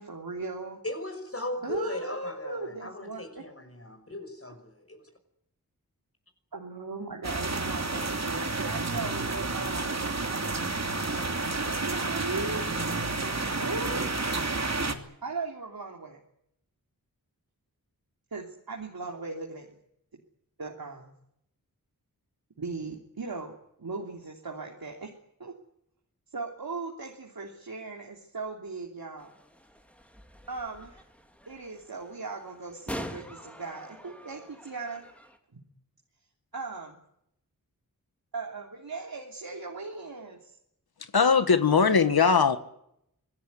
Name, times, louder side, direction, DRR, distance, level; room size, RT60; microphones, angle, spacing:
voice 1, 0.0-0.8 1.6-3.4 6.5-10.5 11.1-12.8 13.3-14.2 15.2-16.2 18.3-19.8 20.6-21.1 22.6-25.1 25.4-25.5 26.3-29.3 30.5-31.0 31.5-35.1 35.5-35.6 36.5-37.0 38.3-40.5, right 3 dB, 75° right, 0 dB, 3.2 m, -38 dB
voice 2, 0.8-5.1, left 1 dB, 40° left, 7 dB, 5.8 m, -37 dB
sound 1, 7.2-14.9, right 3 dB, 45° right, 2.8 m, -30 dB
sound 2, 29.2-35.4, equal, 5° left, 3.3 m, -44 dB
voice 3, 41.1-42.6, left 5 dB, 90° left, 10 dB, 1.7 m, -20 dB
25.5 x 18.0 x 9.6 m, 0.76 s
wide cardioid pair, 80°, 36 cm